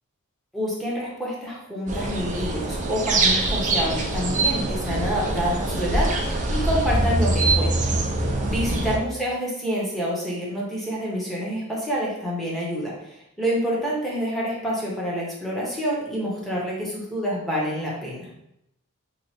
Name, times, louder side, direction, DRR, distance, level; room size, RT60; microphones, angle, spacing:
voice 1, 0.5-18.3, equal, ahead, -6 dB, 1.0 m, -28 dB
sound 1, 1.9-9.0, right 2 dB, 35° right, 0.5 m, -24 dB
3.0 x 2.5 x 4.1 m, 0.79 s
head